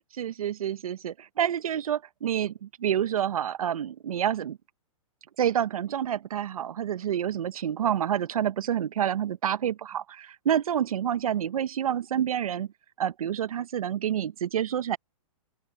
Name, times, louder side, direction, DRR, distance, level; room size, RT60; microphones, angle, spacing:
voice 1, 0.1-4.6 5.4-12.7 13.0-15.0, right 9 dB, 85° right, 0.8 m, -28 dB
open air
hypercardioid pair, 135°, 18 cm